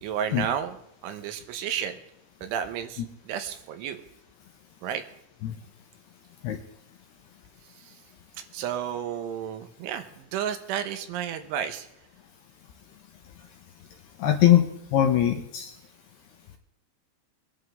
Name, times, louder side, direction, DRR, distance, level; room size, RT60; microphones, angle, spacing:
voice 1, 0.0-0.7 1.0-2.0 2.4-4.0 4.8-5.0 8.5-11.9, right 9 dB, 80° right, 8 dB, 3.4 m, -32 dB
voice 2, 14.2-15.7, left 11 dB, 75° left, 4 dB, 2.5 m, -21 dB
23.5 x 11.0 x 3.6 m, 0.79 s
omnidirectional pair, 5.7 m